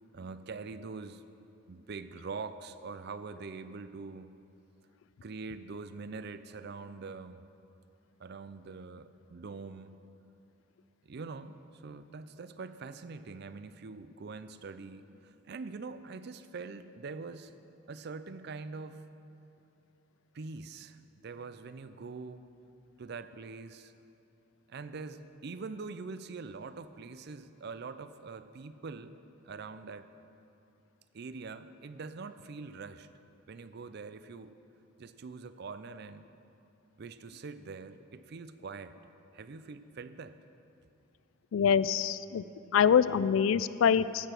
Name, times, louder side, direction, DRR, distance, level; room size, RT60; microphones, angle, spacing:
voice 1, 0.1-1.2 1.7-4.3 5.2-7.4 8.2-10.0 11.0-17.5 17.9-19.1 20.3-22.4 23.0-23.9 24.7-29.2 29.4-30.1 31.1-33.1 33.5-34.5 35.0-36.3 37.0-39.0 39.3-40.4, right 4 dB, 55° right, 12 dB, 0.5 m, -44 dB
voice 2, 41.5-42.4 42.7-44.3, left 7 dB, 75° left, 17 dB, 0.3 m, -25 dB
15.0 x 6.8 x 6.0 m, 2.8 s
head